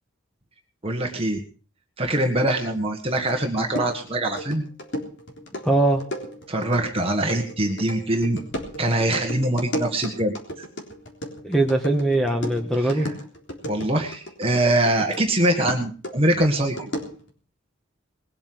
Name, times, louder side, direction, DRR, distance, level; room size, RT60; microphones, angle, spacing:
voice 1, 0.8-1.4 2.0-4.6 6.5-8.4 8.8-10.6 12.8-13.1 13.6-16.9, right 1 dB, 30° right, 2 dB, 1.7 m, -23 dB
sound 1, 3.2-15.3 15.7-17.3, equal, 60° left, 3.7 m, -34 dB
voice 2, 5.6-6.0 11.4-13.1, right 2 dB, ahead, 3 dB, 1.5 m, -21 dB
21.0 x 8.7 x 6.1 m, 0.41 s
head